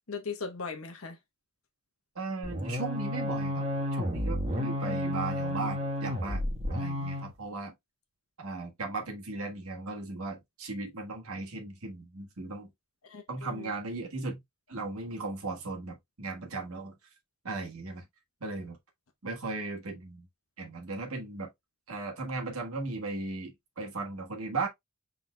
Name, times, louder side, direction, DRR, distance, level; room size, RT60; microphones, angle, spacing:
voice 1, 0.1-1.2 4.5-5.0 13.0-13.7, left 5 dB, 70° left, 1.0 m, -39 dB
voice 2, 2.1-3.6 3.9-6.4 6.7-7.7 8.4-12.7 13.3-14.4 14.7-16.9 17.4-18.1 18.4-18.8 19.2-20.3 20.6-21.5 21.9-24.7, right 3 dB, 80° right, 1.6 m, -37 dB
sound 1, 2.4-7.3, left 1 dB, 30° right, 1.4 m, -32 dB
5.9 x 4.0 x 2.2 m
head